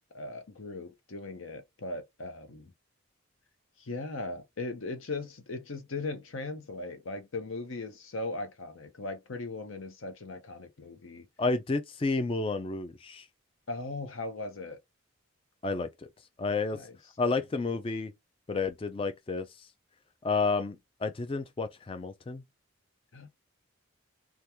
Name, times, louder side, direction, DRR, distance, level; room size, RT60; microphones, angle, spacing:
voice 1, 0.1-2.7 3.8-11.3 13.7-14.8 16.7-17.3 23.1-23.3, left 2 dB, 70° left, 0.8 m, -38 dB
voice 2, 11.4-13.3 15.6-15.9 16.4-16.9 17.2-18.1 18.5-19.5 20.2-22.4, left 3 dB, 25° left, 0.3 m, -30 dB
2.9 x 2.3 x 3.4 m
head